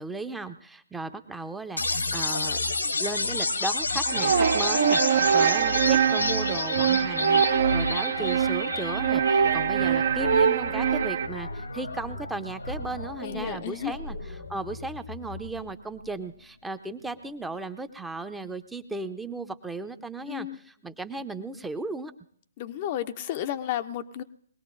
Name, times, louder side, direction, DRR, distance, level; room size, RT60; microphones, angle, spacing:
voice 1, 0.0-2.6 3.0-14.2 14.5-22.1, right 3 dB, 5° right, 9 dB, 0.6 m, -36 dB
sound 1, 1.8-15.8, left 3 dB, 85° left, 1.2 m, -31 dB
sound 2, 4.1-11.3, right 8 dB, 60° right, 0.6 m, -23 dB
voice 2, 13.2-14.0 20.3-20.6 22.6-24.2, left 11 dB, 40° left, 10 dB, 0.5 m, -32 dB
22.0 x 18.0 x 2.5 m, 0.62 s
figure-of-eight pair, 130°, 0 cm